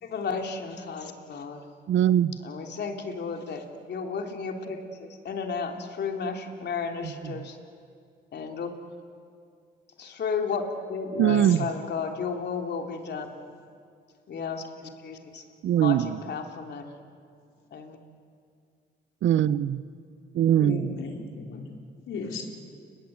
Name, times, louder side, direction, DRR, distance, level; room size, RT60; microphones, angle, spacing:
voice 1, 0.0-1.7 2.4-7.6 8.3-8.7 10.0-10.6 10.9-13.3 14.3-15.4 15.8-16.8 17.7-18.0, left 5 dB, 60° left, 3 dB, 3.4 m, -33 dB
voice 2, 1.9-2.3 7.2-7.4 11.2-11.7 15.6-16.2 19.2-19.8 20.3-20.9, right 10 dB, 70° right, 16 dB, 0.9 m, -22 dB
voice 3, 11.1-11.8 20.5-21.6 22.1-22.4, left 4 dB, 80° left, 1 dB, 4.5 m, -36 dB
29.5 x 21.5 x 8.9 m, 2.3 s
cardioid pair, 90°, 20 cm